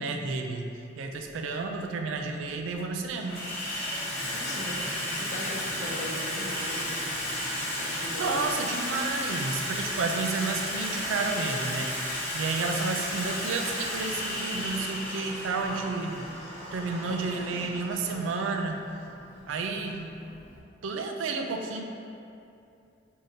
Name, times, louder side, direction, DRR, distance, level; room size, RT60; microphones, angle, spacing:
voice 1, 0.0-3.5 7.7-16.3 16.7-18.8 19.5-20.2 20.8-21.8, right 3 dB, 80° right, 4 dB, 0.4 m, -31 dB
Water tap faucet / Sink (filling or washing), 1.2-1.3 2.3-2.7 3.0-20.6, left 1 dB, 15° left, 0.9 m, -34 dB
voice 2, 4.3-8.6, left 1 dB, 40° left, -2 dB, 0.5 m, -39 dB
4.9 x 2.7 x 2.7 m, 2.6 s
head